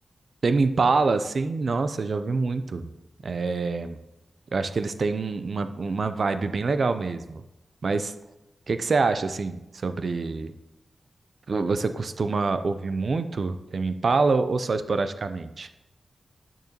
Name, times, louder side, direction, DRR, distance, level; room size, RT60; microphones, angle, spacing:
voice 1, 0.4-2.9 3.2-4.0 4.5-7.4 7.8-8.1 8.7-10.5 11.5-15.7, right 4 dB, 55° right, 11 dB, 0.4 m, -25 dB
8.6 x 6.5 x 2.9 m, 0.95 s
wide cardioid pair, 95°, 0 cm